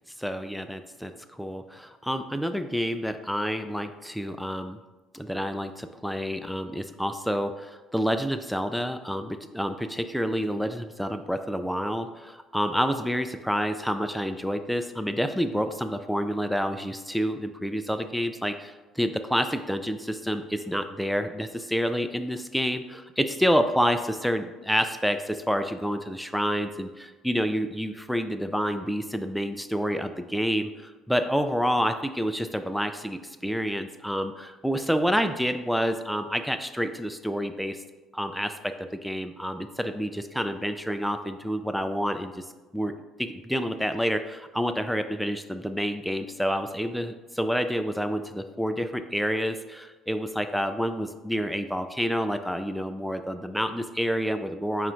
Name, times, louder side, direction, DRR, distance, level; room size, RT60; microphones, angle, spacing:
voice 1, 0.2-4.8 5.1-37.8 38.1-42.4 42.7-42.9 43.2-54.9, equal, ahead, 8 dB, 0.3 m, -28 dB
4.8 x 2.4 x 4.3 m, 1.2 s
figure-of-eight pair, 55°, 0 cm